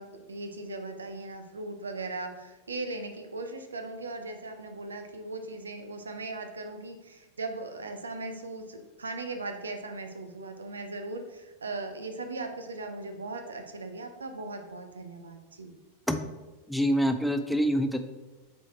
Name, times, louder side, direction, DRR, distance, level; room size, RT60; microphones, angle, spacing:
voice 1, 0.0-15.7, right 2 dB, 75° right, 6 dB, 0.7 m, -38 dB
voice 2, 16.7-18.0, equal, ahead, 7 dB, 0.5 m, -26 dB
6.9 x 4.4 x 4.4 m, 1.2 s
figure-of-eight pair, 90°, 0 cm